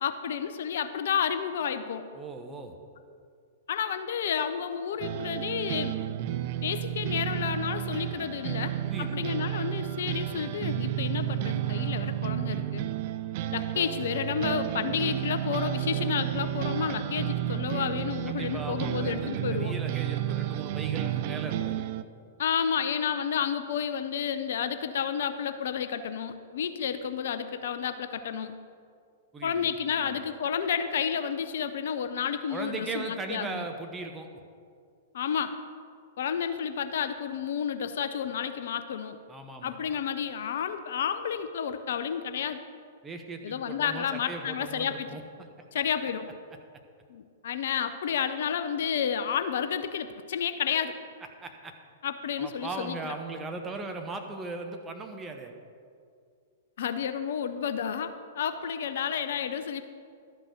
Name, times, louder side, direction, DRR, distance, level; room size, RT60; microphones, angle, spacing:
voice 1, 0.0-2.1 3.7-6.0 6.6-12.9 13.5-19.7 22.4-28.5 29.4-33.6 35.1-35.6 36.2-39.2 39.6-42.6 43.4-45.1 45.7-46.3 47.1-51.0 52.0-53.1 56.8-59.8, left 8 dB, 60° left, 10 dB, 0.5 m, -31 dB
voice 2, 2.1-2.7 8.8-9.3 18.3-21.8 29.3-30.2 32.5-34.3 39.3-39.7 43.0-45.2 51.4-51.7 52.4-55.5, right 3 dB, 15° right, 4 dB, 1.1 m, -38 dB
sound 1, 5.0-22.0, right 12 dB, 45° right, 0.4 m, -31 dB
12.0 x 6.1 x 6.5 m, 2.2 s
figure-of-eight pair, 105°, 0 cm